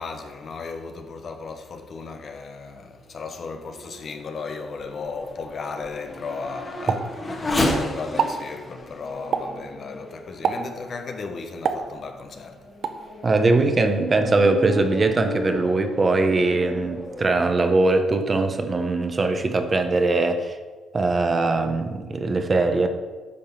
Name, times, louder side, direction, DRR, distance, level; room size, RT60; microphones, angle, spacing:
voice 1, 0.0-12.6, left 4 dB, 50° left, 1.0 m, -35 dB
Race car auto racing / Accelerating revving vroom, 3.3-11.2 11.8-11.9 12.5-17.3, left 1 dB, 30° left, 1.7 m, -33 dB
Explosion, 6.9-7.7 8.0-8.5 9.3-9.7 10.4-10.8 11.6-12.3 12.8-13.1, right 6 dB, 65° right, 0.7 m, -27 dB
voice 2, 13.2-20.6 20.9-22.9, right 3 dB, 30° right, 1.0 m, -21 dB
10.5 x 3.9 x 7.0 m
cardioid pair, 90°, 0 cm